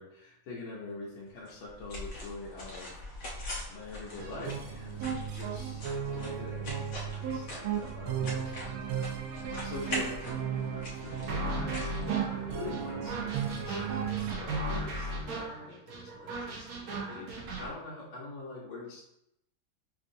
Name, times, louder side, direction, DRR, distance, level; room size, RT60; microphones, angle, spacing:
voice 1, 0.0-3.0 3.7-19.0, left 3 dB, 80° left, -6 dB, 1.5 m, -45 dB
sound 1, 1.5-12.8, left 1 dB, 50° left, 1.2 m, -43 dB
sound 2, 4.2-14.4, right 8 dB, 90° right, 1.4 m, -35 dB
sound 3, 11.3-17.7, right 1 dB, 60° right, 1.0 m, -37 dB
5.4 x 2.6 x 2.6 m, 0.81 s
omnidirectional pair, 2.2 m